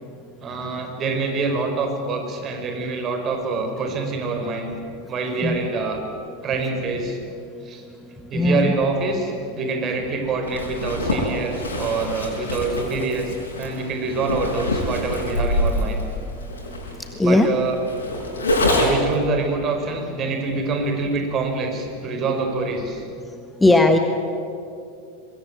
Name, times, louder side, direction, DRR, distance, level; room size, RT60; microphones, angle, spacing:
voice 1, 0.4-4.7 5.1-6.0 6.4-7.2 7.6-7.8 8.3-16.0 17.2-17.8 18.8-23.0, right 3 dB, 35° right, 5 dB, 4.8 m, -25 dB
voice 2, 8.3-8.7 17.2-17.5 23.6-24.0, left 2 dB, 10° left, 6 dB, 1.5 m, -17 dB
Zipper (clothing), 10.5-19.2, left 1 dB, 75° left, 6.5 m, -25 dB
24.0 x 21.5 x 9.1 m, 2.6 s
figure-of-eight pair, 85°, 0 cm